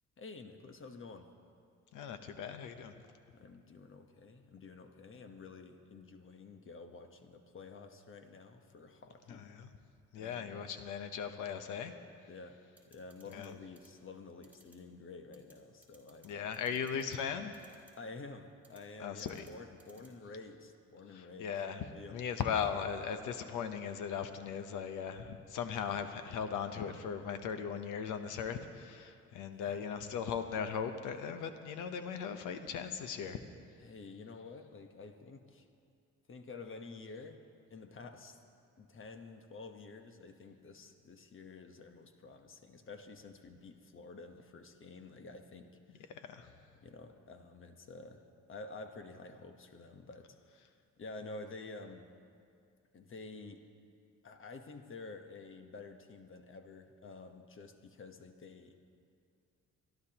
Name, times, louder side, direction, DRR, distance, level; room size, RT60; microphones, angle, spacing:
voice 1, 0.2-1.3 3.3-9.5 10.2-10.7 12.3-12.6 12.9-16.8 18.0-21.5 21.8-22.2 29.5-29.8 33.8-35.7 36.3-37.4 37.7-38.4 38.8-46.1 46.8-50.4 51.0-52.1 52.9-53.6 54.2-58.7, left 3 dB, 45° left, 6 dB, 1.1 m, -50 dB
voice 2, 1.9-2.9 9.3-9.7 10.1-11.9 13.3-13.5 16.2-17.5 19.0-19.5 21.1-21.8 22.1-33.4 46.1-46.5, left 7 dB, 85° left, 8 dB, 0.9 m, -38 dB
sound 1, 12.8-13.5 13.8-13.9 14.4-14.8 15.3-15.5 15.8-16.3 16.5-17.2 17.5-17.9 18.6-18.8 19.2-19.5 19.8-20.1, right 2 dB, 5° right, 3.2 m, -62 dB
25.0 x 12.0 x 3.0 m, 2.4 s
cardioid pair, 90°, 30 cm